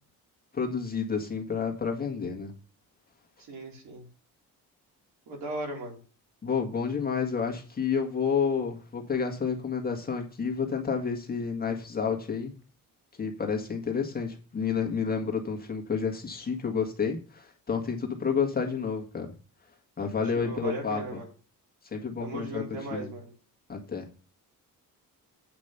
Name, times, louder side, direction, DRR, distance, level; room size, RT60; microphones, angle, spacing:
voice 1, 0.5-2.5 6.4-12.5 13.2-19.3 20.0-21.2 21.8-22.6 22.9-23.1 23.7-24.0, left 6 dB, 25° left, 2 dB, 1.8 m, -30 dB
voice 2, 3.4-4.1 5.3-6.0 20.4-21.3 22.2-23.3, right 1 dB, 75° right, -1 dB, 4.3 m, -37 dB
8.6 x 5.2 x 6.7 m, 0.37 s
cardioid pair, 145°, 36 cm